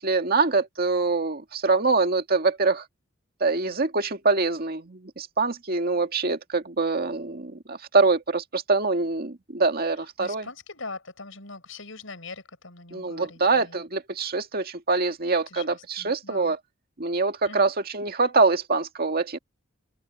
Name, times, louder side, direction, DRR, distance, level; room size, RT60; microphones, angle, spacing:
voice 1, 0.0-2.8 3.4-10.5 12.9-16.6 17.0-19.4, right 3 dB, 50° right, 2.0 m, -24 dB
voice 2, 10.0-13.8 15.5-16.6 17.4-17.7, left 3 dB, 75° left, 7.5 m, -42 dB
head